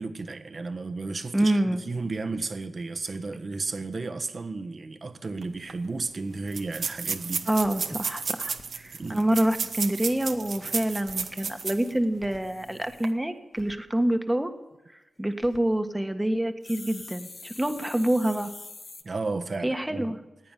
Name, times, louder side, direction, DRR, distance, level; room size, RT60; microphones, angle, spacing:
voice 1, 0.0-7.5 9.0-9.2 19.0-20.1, right 3 dB, 50° right, 7 dB, 1.4 m, -33 dB
voice 2, 1.3-1.8 7.5-14.5 15.2-18.5 19.6-20.2, right 1 dB, 10° right, 7 dB, 1.6 m, -26 dB
sound 1, 5.4-5.5 5.7-5.8 6.5-11.9 12.3-12.4 12.9-13.1, right 5 dB, 70° right, 1.2 m, -32 dB
sound 2, 7.6-8.6 10.9-13.1 13.6-13.7 15.2-15.6 16.6-19.0, left 3 dB, 50° left, 1.3 m, -46 dB
16.0 x 9.3 x 9.2 m, 1.0 s
cardioid pair, 65°, 0 cm